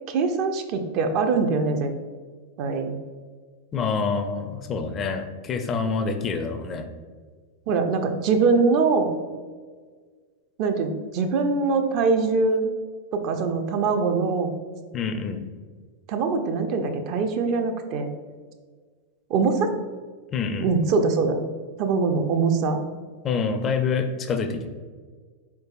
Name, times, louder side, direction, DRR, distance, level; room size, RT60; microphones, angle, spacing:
voice 1, 0.1-1.9 2.6-2.9 7.7-9.1 10.6-12.7 13.1-14.5 16.1-18.1 19.3-19.7 20.6-21.4 21.8-22.8, right 4 dB, 40° right, 6 dB, 0.5 m, -23 dB
voice 2, 3.7-6.9 14.9-15.4 20.3-20.7 23.2-24.7, left 5 dB, 25° left, 7 dB, 0.4 m, -26 dB
4.6 x 4.5 x 2.4 m, 1.5 s
figure-of-eight pair, 90°, 0 cm